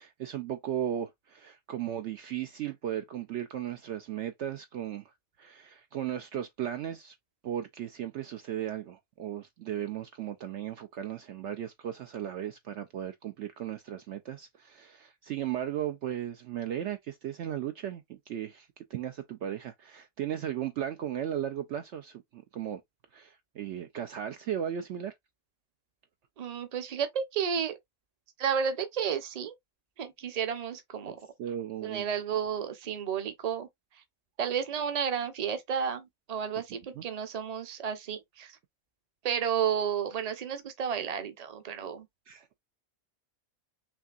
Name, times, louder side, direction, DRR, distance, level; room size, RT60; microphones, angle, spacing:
voice 1, 0.0-5.0 5.4-7.1 7.4-22.8 23.1-25.1 31.1-32.0 37.0-37.1 42.3-42.5, right 10 dB, 65° right, 0.8 m, -36 dB
voice 2, 26.4-27.8 28.4-29.5 30.0-31.2 31.8-33.7 34.4-38.6 39.2-42.1, right 7 dB, 35° right, 0.7 m, -32 dB
5.8 x 2.7 x 2.4 m
omnidirectional pair, 1.4 m